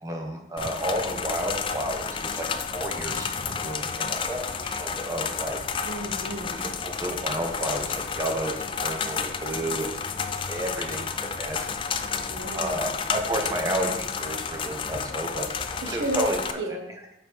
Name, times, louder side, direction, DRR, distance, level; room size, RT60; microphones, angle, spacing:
voice 1, 0.0-5.6 6.6-11.7 12.5-15.5 15.9-16.6, right 1 dB, 20° right, 2 dB, 1.0 m, -31 dB
sound 1, 0.6-16.5, left 5 dB, 25° left, 0.3 m, -31 dB
voice 2, 5.8-6.6 12.3-13.0 15.8-16.3 16.6-16.9, right 1 dB, 85° right, 3 dB, 1.2 m, -33 dB
6.9 x 5.1 x 4.6 m, 0.89 s
head